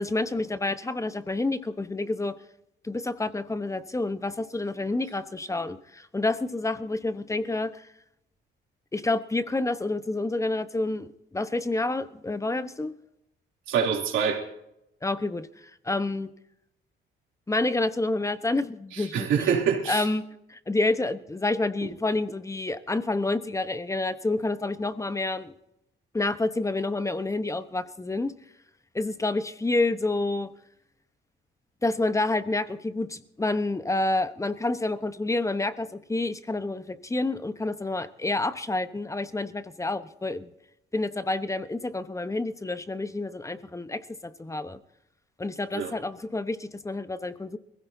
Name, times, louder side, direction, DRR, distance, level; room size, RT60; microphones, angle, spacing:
voice 1, 0.0-2.4 2.8-7.9 8.9-11.1 11.3-12.9 15.0-16.3 17.5-19.6 19.9-20.2 20.5-25.5 26.1-28.3 28.9-30.5 31.8-40.5 40.9-44.8 45.4-47.6, left 2 dB, 15° left, 12 dB, 1.0 m, -28 dB
voice 2, 13.7-14.4 19.0-20.0 45.7-45.9, right 7 dB, 80° right, 1 dB, 2.9 m, -25 dB
22.5 x 16.0 x 2.7 m, 0.82 s
cardioid pair, 90°, 20 cm